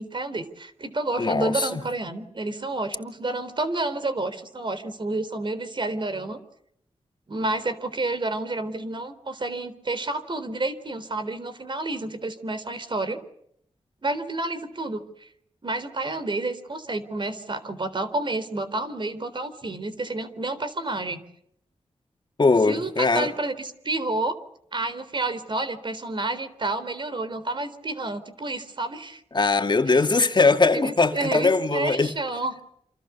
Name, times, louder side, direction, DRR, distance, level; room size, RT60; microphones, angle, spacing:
voice 1, 0.0-6.4 7.3-13.2 14.0-15.3 15.6-21.2 22.7-24.4 24.7-29.2 29.9-30.0 30.7-32.5, right 2 dB, 45° right, 3.9 m, -30 dB
voice 2, 1.2-1.8 22.4-23.3 29.3-32.1, left 3 dB, 45° left, 2.4 m, -21 dB
28.0 x 27.5 x 7.0 m
wide cardioid pair, 75°, 11 cm